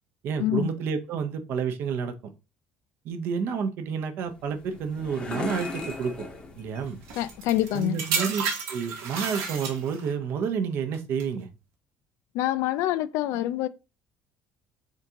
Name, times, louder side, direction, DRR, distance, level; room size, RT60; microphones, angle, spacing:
voice 1, 0.2-2.1 3.0-6.1 6.6-7.0 7.7-8.4 8.7-11.5, right 6 dB, 50° right, 0.6 m, -29 dB
sound 1, 4.2-7.8, left 3 dB, 20° left, 0.7 m, -38 dB
voice 2, 7.1-8.0 12.3-13.7, left 14 dB, 75° left, 0.3 m, -26 dB
sound 2, 7.1-10.1 10.9-11.2, right 6 dB, 75° right, 1.0 m, -31 dB
3.7 x 3.5 x 2.8 m
cardioid pair, 170°, 5 cm